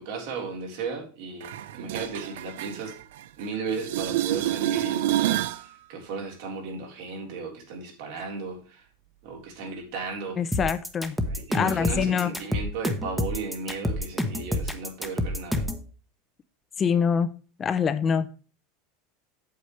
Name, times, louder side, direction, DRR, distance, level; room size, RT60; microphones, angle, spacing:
voice 1, 0.0-2.9 3.4-8.8 9.2-10.4 11.5-15.7, right 4 dB, 65° right, 2 dB, 3.7 m, -35 dB
sound 1, 1.4-3.5 3.7-5.7 11.4-11.5, right 13 dB, 80° right, 0.5 m, -28 dB
voice 2, 10.4-11.2 11.5-12.3 16.8-17.3 17.6-18.3, left 6 dB, 20° left, 12 dB, 0.5 m, -24 dB
sound 2, 10.5-15.8, left 1 dB, 5° right, 0.9 m, -28 dB
8.3 x 7.9 x 3.2 m, 0.36 s
supercardioid pair, 160°, 0 cm